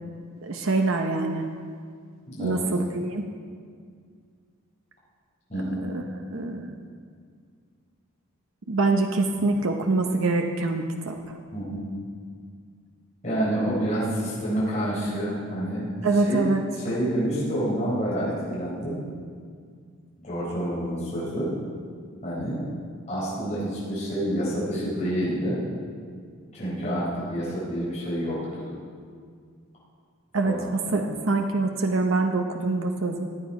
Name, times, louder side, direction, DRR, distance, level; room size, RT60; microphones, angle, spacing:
voice 1, 0.4-1.5 2.4-3.3 5.8-6.0 6.3-6.8 8.7-11.3 16.0-16.6 30.3-30.6 30.9-33.3, right 3 dB, 70° right, 4 dB, 0.8 m, -25 dB
voice 2, 2.3-2.6 5.5-5.9 11.5-11.9 13.2-15.9 16.2-16.4 16.8-19.0 20.2-21.5 22.2-22.6 23.1-25.6 26.5-28.7 30.4-31.0, right 1 dB, 35° left, -8 dB, 4.2 m, -28 dB
16.5 x 9.2 x 4.8 m, 2.1 s
head